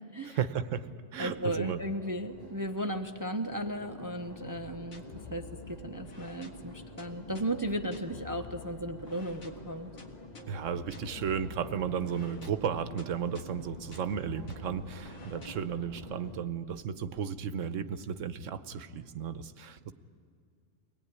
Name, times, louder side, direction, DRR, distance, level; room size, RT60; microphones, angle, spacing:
voice 1, 0.2-1.8 10.5-19.9, right 7 dB, 80° right, 12 dB, 1.1 m, -34 dB
Crowd, 1.2-16.4, left 1 dB, 35° left, 1.7 m, -49 dB
voice 2, 1.2-9.9, right 1 dB, 20° right, 7 dB, 0.7 m, -35 dB
sound 1, 4.5-15.5, left 3 dB, 70° left, 2.0 m, -50 dB
23.5 x 18.5 x 9.5 m, 2.3 s
omnidirectional pair, 1.3 m